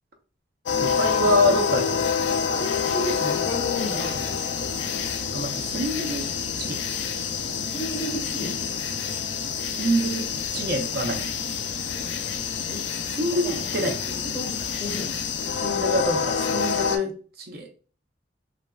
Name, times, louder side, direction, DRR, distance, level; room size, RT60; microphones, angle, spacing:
sound 1, 0.7-17.0, left 6 dB, 80° left, 0.4 m, -27 dB
voice 1, 0.8-2.1 5.3-6.3 6.6-6.8 9.7-10.2 10.5-11.3 13.2-13.9 15.6-17.7, equal, 60° right, 4 dB, 0.5 m, -26 dB
voice 2, 2.5-4.4 7.7-8.7 12.6-12.8 13.3-15.1, left 1 dB, 25° left, 0 dB, 0.7 m, -33 dB
3.1 x 2.4 x 2.2 m, 0.39 s
head